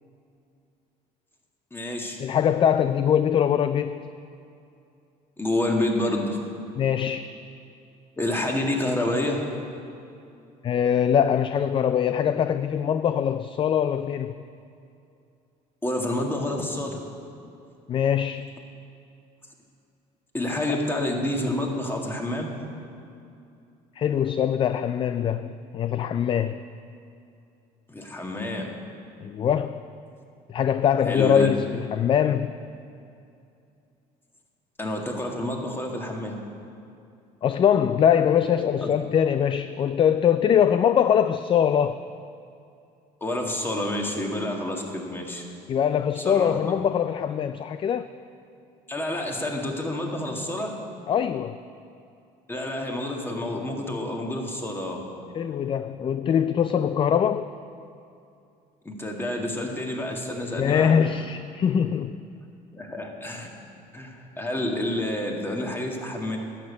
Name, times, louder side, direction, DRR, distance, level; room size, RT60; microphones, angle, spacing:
voice 1, 1.7-2.2 5.4-6.4 8.2-9.5 15.8-17.0 20.3-22.5 27.9-28.7 31.0-31.5 34.8-36.4 38.8-38.9 43.2-45.4 46.2-46.6 48.9-50.8 52.5-55.1 58.9-61.0 62.7-63.5 63.9-66.4, left 1 dB, 15° left, 1 dB, 1.8 m, -28 dB
voice 2, 2.2-4.1 6.8-7.3 10.6-14.4 17.9-18.5 24.0-26.6 29.2-29.8 30.5-32.6 37.4-42.0 45.7-48.1 51.1-51.6 55.4-57.5 60.6-62.2, left 8 dB, 35° left, 12 dB, 0.3 m, -22 dB
11.5 x 6.6 x 8.2 m, 2.6 s
supercardioid pair, 100°, 16 cm